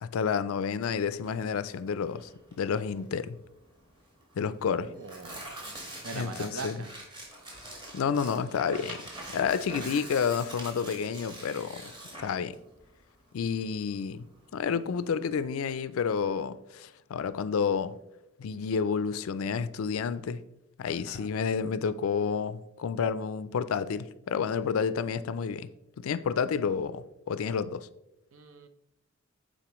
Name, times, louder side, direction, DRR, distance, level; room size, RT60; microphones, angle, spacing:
voice 1, 0.0-2.3 2.6-3.4 4.4-4.9 6.1-6.8 7.9-9.0 9.3-11.9 12.2-12.6 13.3-14.2 14.5-18.0 18.4-20.4 20.8-25.7 26.0-27.9, left 6 dB, 80° left, 0.4 m, -30 dB
Tearing, 1.1-15.4, right 1 dB, 25° right, 1.4 m, -45 dB
voice 2, 4.7-5.5 6.0-6.9 21.0-21.3 28.3-28.7, right 4 dB, 75° right, 0.7 m, -41 dB
9.0 x 4.1 x 3.0 m
head